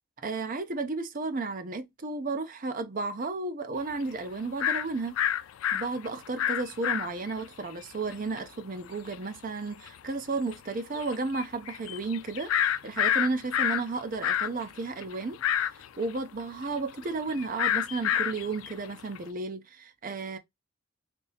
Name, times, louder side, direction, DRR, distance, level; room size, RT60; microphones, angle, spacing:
voice 1, 0.2-5.2 5.7-15.4 16.0-20.4, right 3 dB, 40° right, 0.5 m, -33 dB
sound 1, 3.9-4.0 4.6-4.8 5.2-7.4 7.8-7.9 8.1-8.4 9.1-9.2 9.9-10.0 10.4-10.5 10.9-13.8 14.1-19.2, left 10 dB, 85° left, 0.3 m, -28 dB
3.4 x 2.8 x 2.8 m
head